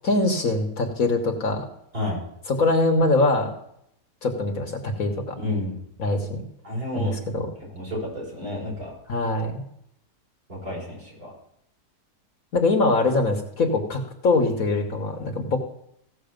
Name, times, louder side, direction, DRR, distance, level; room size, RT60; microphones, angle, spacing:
voice 1, 0.0-1.7 2.5-3.5 4.2-5.4 6.0-6.4 6.9-7.5 9.1-9.6 12.5-15.6, left 2 dB, 55° left, 5 dB, 1.5 m, -23 dB
voice 2, 5.4-5.8 6.6-7.1 7.7-8.9 10.6-11.3, left 1 dB, 55° right, -5 dB, 6.3 m, -30 dB
16.0 x 6.7 x 5.1 m, 0.74 s
omnidirectional pair, 1.8 m